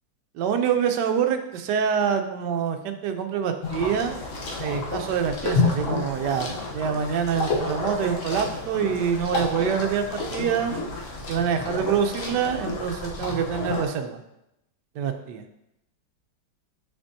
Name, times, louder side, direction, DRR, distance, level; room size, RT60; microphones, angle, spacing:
voice 1, 0.3-4.1 4.6-10.1 10.3-10.7 11.3-14.2 15.0-15.4, right 7 dB, 75° right, 6 dB, 1.2 m, -26 dB
sound 1, 3.6-13.8, left 3 dB, 50° left, 1.1 m, -30 dB
6.8 x 5.1 x 2.7 m, 0.85 s
omnidirectional pair, 2.0 m